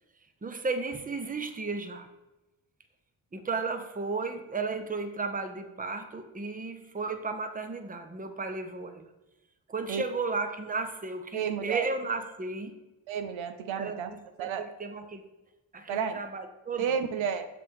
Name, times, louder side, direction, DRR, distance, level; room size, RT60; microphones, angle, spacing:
voice 1, 0.4-2.1 3.3-9.1 9.7-12.7 13.8-15.3 15.7-16.8, right 4 dB, 15° right, 7 dB, 0.8 m, -34 dB
voice 2, 11.3-11.9 13.1-14.1 14.4-14.7 15.9-16.2 16.8-17.5, right 7 dB, 70° right, 8 dB, 0.6 m, -31 dB
6.8 x 4.9 x 3.6 m, 1.0 s
supercardioid pair, 40°, 49 cm